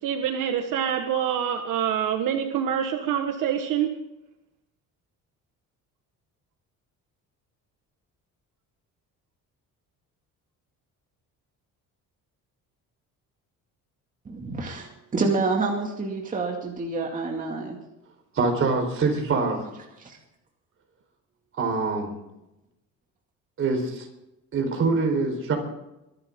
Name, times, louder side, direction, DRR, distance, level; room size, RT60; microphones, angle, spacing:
voice 1, 0.0-3.9, right 9 dB, 70° right, 5 dB, 1.5 m, -26 dB
voice 2, 14.3-17.8 20.0-20.2, right 3 dB, 25° right, 0 dB, 2.3 m, -28 dB
voice 3, 18.3-19.7 21.6-22.1 23.6-24.1 24.5-25.6, right 4 dB, 40° right, 3 dB, 4.4 m, -24 dB
23.5 x 11.5 x 3.7 m, 0.91 s
cardioid pair, 150°, 33 cm